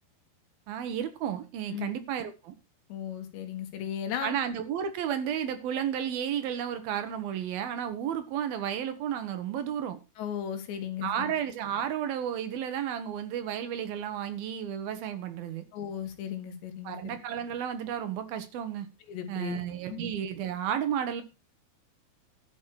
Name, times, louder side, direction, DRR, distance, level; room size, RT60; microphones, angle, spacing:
voice 1, 0.7-2.5 4.2-10.0 11.0-15.6 16.8-18.9 19.3-21.2, right 9 dB, 65° right, 9 dB, 2.9 m, -32 dB
voice 2, 2.9-4.4 10.2-11.1 15.7-17.0 19.1-19.6 19.9-20.0, left 9 dB, 85° left, 7 dB, 4.0 m, -35 dB
12.0 x 6.5 x 6.4 m, 0.29 s
omnidirectional pair, 4.9 m